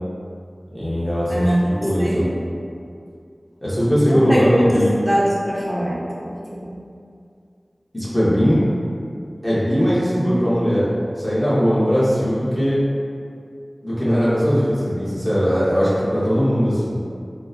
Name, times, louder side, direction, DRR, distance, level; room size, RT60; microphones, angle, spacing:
voice 1, 0.7-2.3 3.6-4.9 7.9-8.6 9.4-10.8 11.2-12.8 13.8-17.0, equal, 15° left, -10 dB, 1.1 m, -19 dB
voice 2, 1.3-1.6 2.0-2.3 4.0-6.7, equal, 5° right, -5 dB, 0.7 m, -22 dB
2.8 x 2.1 x 3.7 m, 2.4 s
wide cardioid pair, 50°, 0 cm